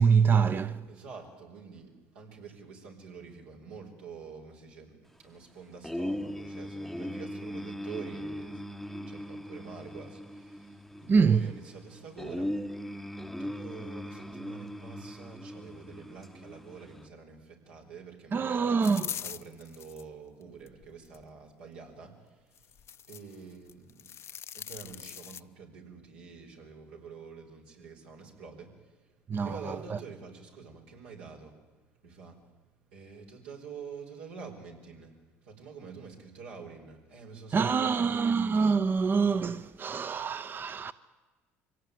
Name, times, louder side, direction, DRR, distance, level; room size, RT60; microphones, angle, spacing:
voice 1, 0.0-0.8 11.1-11.5 18.3-19.1 29.3-29.8 37.5-40.9, right 5 dB, 35° right, 0.7 m, -25 dB
voice 2, 0.9-12.7 13.4-18.6 19.0-24.1 24.5-31.6 32.0-32.4 32.9-38.3, right 5 dB, 90° right, 4.5 m, -47 dB
sound 1, 5.8-17.1, equal, ahead, 0.8 m, -39 dB
sound 2, 18.8-20.0 20.6-21.2 22.6-23.4 23.7-25.4, left 9 dB, 50° left, 0.7 m, -41 dB
24.0 x 17.0 x 9.3 m
supercardioid pair, 75°, 6 cm